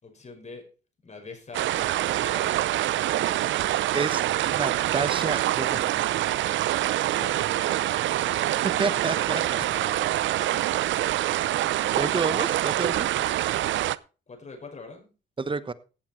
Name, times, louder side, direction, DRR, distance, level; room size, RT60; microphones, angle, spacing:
voice 1, 0.0-0.6 1.0-2.5 7.2-7.9 8.3-10.1 11.8-12.2 14.3-15.1, left 3 dB, 35° left, 3 dB, 5.4 m, -44 dB
sound 1, 1.5-14.0, right 14 dB, 70° right, 0.6 m, -25 dB
voice 2, 3.9-5.9 8.8-9.4 12.0-13.1 15.4-15.7, right 4 dB, 25° right, 14 dB, 1.1 m, -29 dB
16.0 x 8.6 x 4.4 m, 0.34 s
cardioid pair, 90°, 20 cm